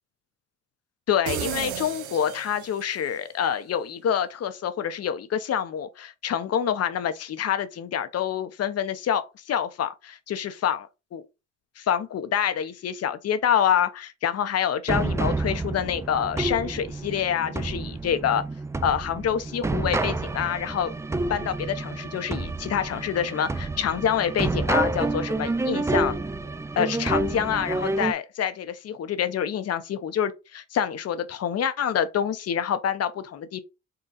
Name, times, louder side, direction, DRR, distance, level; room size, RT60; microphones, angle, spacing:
voice 1, 1.1-11.3 11.8-18.4 18.8-20.9 21.3-26.1 26.8-33.6, left 8 dB, 55° left, 0.7 m, -27 dB
sound 1, 1.3-3.1, right 10 dB, 75° right, 0.6 m, -33 dB
sound 2, 14.9-28.1, right 2 dB, 10° right, 0.3 m, -29 dB
3.9 x 2.3 x 4.0 m
cardioid pair, 90°, 30 cm